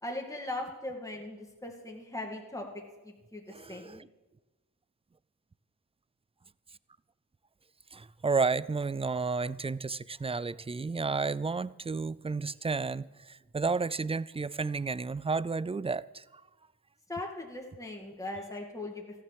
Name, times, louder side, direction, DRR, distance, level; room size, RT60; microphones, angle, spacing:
voice 1, 0.0-3.4 3.7-4.0 17.1-19.2, left 2 dB, 10° left, 2.4 m, -39 dB
voice 2, 3.5-4.1 7.9-16.4, right 4 dB, 15° right, 0.4 m, -32 dB
13.5 x 10.0 x 7.6 m
cardioid pair, 50°, 37 cm